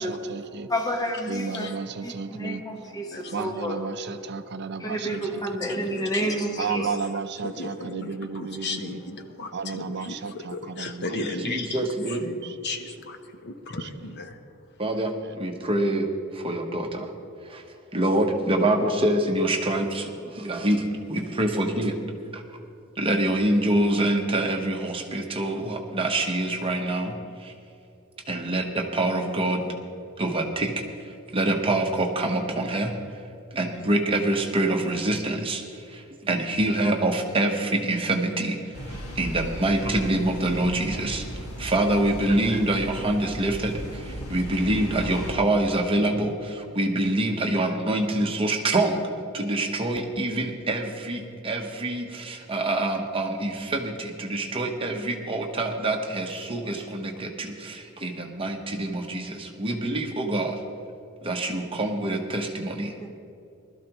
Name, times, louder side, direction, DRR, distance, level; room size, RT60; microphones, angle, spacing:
voice 1, 0.0-0.7 1.3-2.6 3.3-5.9 6.6-9.0 9.5-11.1 11.5-11.6 12.4-12.8 13.8-13.9 15.2-15.3, right 5 dB, 50° right, 10 dB, 0.5 m, -34 dB
voice 2, 0.7-1.7 2.0-3.8 4.8-6.9 63.0-63.1, equal, 15° left, 1 dB, 1.2 m, -30 dB
voice 3, 5.4-6.3 6.7-6.9 7.4-14.5, left 3 dB, 50° left, 7 dB, 0.9 m, -36 dB
voice 4, 11.1-12.3 14.8-16.1 16.3-17.1 17.4-17.6 17.9-22.0 22.3-22.4 23.0-27.5 28.3-29.7 30.2-30.8 31.3-32.9 33.5-41.3 41.6-60.6 61.2-62.9, right 1 dB, 25° right, 3 dB, 1.0 m, -26 dB
sound 1, 38.7-45.3, equal, 70° left, 1.7 m, -36 dB
20.0 x 13.0 x 3.0 m, 2.6 s
head